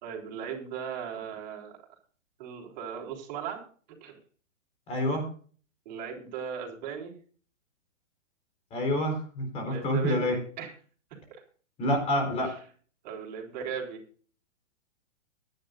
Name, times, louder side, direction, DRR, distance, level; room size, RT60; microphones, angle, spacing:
voice 1, 0.0-1.8 2.4-3.6 3.9-4.2 5.9-7.2 9.6-10.7 11.1-11.4 12.4-12.6 13.0-14.0, right 7 dB, 35° right, 1 dB, 4.0 m, -38 dB
voice 2, 4.9-5.2 8.7-10.4 11.8-12.5, left 1 dB, 15° left, 4 dB, 4.0 m, -27 dB
21.5 x 10.5 x 2.6 m, 0.42 s
hypercardioid pair, 165°, 38 cm